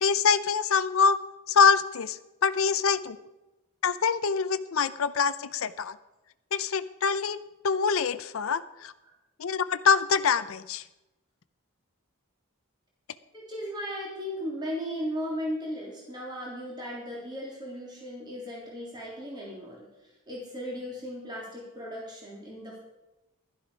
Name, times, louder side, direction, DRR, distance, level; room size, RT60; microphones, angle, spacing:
voice 1, 0.0-1.2 1.5-3.2 3.8-6.0 6.5-7.4 7.6-8.9 9.4-10.8, left 6 dB, 75° left, 13 dB, 0.6 m, -25 dB
voice 2, 13.3-19.9 20.3-22.8, equal, 20° right, -4 dB, 3.4 m, -36 dB
12.0 x 11.5 x 5.0 m, 0.98 s
head